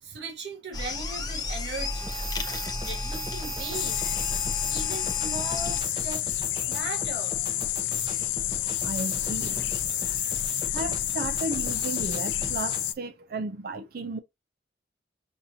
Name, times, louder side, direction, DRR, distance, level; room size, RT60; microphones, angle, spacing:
voice 1, 0.0-2.2 2.9-4.0 4.7-6.2 6.7-7.4, right 3 dB, 70° right, 1.4 m, -38 dB
sound 1, 0.7-5.8, left 2 dB, 20° left, 0.6 m, -33 dB
sound 2, 2.0-13.0, right 2 dB, 25° right, 0.8 m, -38 dB
sound 3, 3.7-12.9, left 14 dB, 75° left, 0.4 m, -29 dB
voice 2, 8.8-9.6 10.7-14.2, right 3 dB, 50° right, 0.5 m, -34 dB
6.3 x 2.7 x 2.7 m
head